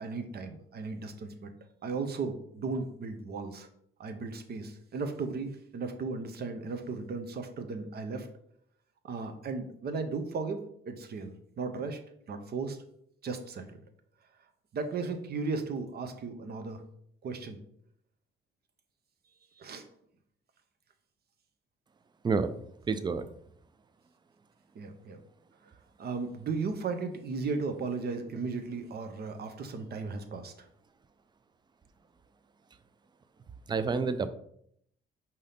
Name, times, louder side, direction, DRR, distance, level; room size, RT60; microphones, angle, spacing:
voice 1, 0.0-1.5 1.8-3.7 4.0-8.3 9.0-12.0 12.3-12.8 13.2-13.8 14.7-16.8 17.2-17.6 19.6-19.8 24.7-25.2 26.0-30.7, right 4 dB, 55° right, 8 dB, 0.7 m, -36 dB
voice 2, 22.9-23.3 33.7-34.3, right 4 dB, 20° right, 12 dB, 0.4 m, -28 dB
5.4 x 2.8 x 3.4 m, 0.69 s
cardioid pair, 90°, 20 cm